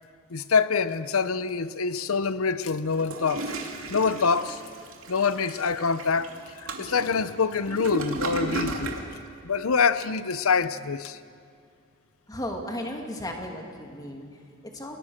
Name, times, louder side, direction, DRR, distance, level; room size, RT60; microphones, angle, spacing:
voice 1, 0.3-3.5 3.9-4.6 5.1-6.3 6.8-9.0 9.4-11.2, left 5 dB, 80° left, 0.7 m, -25 dB
Toilet flush, 2.9-9.1, right 1 dB, 70° right, 2.8 m, -34 dB
voice 2, 12.3-15.0, left 1 dB, 20° left, 2.8 m, -35 dB
29.5 x 20.5 x 6.6 m
head